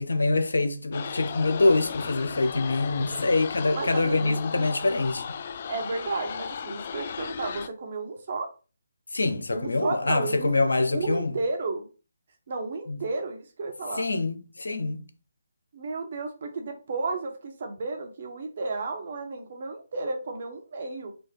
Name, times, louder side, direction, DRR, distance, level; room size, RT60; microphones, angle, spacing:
voice 1, 0.0-5.4 9.1-11.4 12.9-13.0 14.0-15.0, left 3 dB, 80° left, 0.8 m, -25 dB
sound 1, 0.9-7.7, left 6 dB, 45° left, 0.3 m, -36 dB
voice 2, 3.7-4.7 5.7-8.5 9.5-10.5 10.9-11.9 12.5-14.1 15.7-21.1, right 3 dB, 50° right, 1.3 m, -33 dB
4.5 x 2.5 x 4.7 m
figure-of-eight pair, 150°, 0 cm